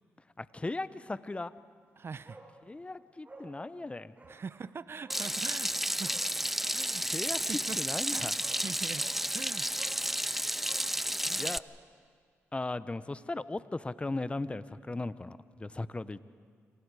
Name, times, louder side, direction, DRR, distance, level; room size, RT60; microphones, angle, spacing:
voice 1, 0.4-1.5 2.7-4.1 7.1-8.3 11.4-11.6 12.5-16.2, left 2 dB, 20° left, 15 dB, 0.8 m, -37 dB
voice 2, 2.0-2.4 4.3-6.2 6.7-7.0 7.5-7.8 8.1-9.1 9.3-9.7 11.3-11.5, right 5 dB, 50° right, 15 dB, 0.7 m, -43 dB
Bark, 2.2-2.5 2.8-2.9 3.2-3.5 4.1-4.4 5.0-5.3 6.0-6.3 7.9-8.0 8.4-8.6 8.9-9.2 9.7-10.0 10.6-11.6 11.9-12.0, right 3 dB, 30° right, 5.1 m, -53 dB
Water tap faucet / Sink (filling or washing), 5.1-11.6, equal, 5° right, 0.5 m, -32 dB
29.0 x 26.0 x 4.8 m, 2.1 s
cardioid pair, 60°, 5 cm